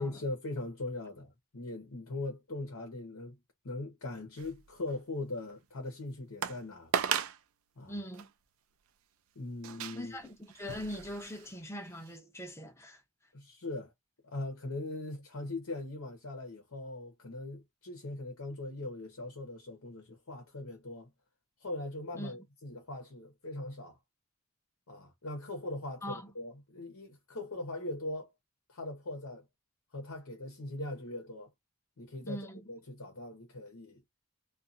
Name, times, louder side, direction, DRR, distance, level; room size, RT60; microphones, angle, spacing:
voice 1, 0.0-3.4 3.6-6.9 7.8-7.9 9.3-10.2 13.3-13.9 14.2-21.1 21.6-24.0 24.9-28.3 28.7-29.4 29.9-31.5 32.0-34.0, left 2 dB, 75° left, 1.0 m, -40 dB
sound 1, 4.4-5.0 5.5-5.6 6.4-6.6 6.9-7.4 8.1-8.3 9.6-11.6 12.0-12.1, right 8 dB, 70° right, 0.4 m, -36 dB
voice 2, 7.9-8.3 9.9-13.0 22.1-22.4 26.0-26.3 32.2-32.6, equal, 10° left, 0.7 m, -41 dB
2.6 x 2.5 x 2.4 m
head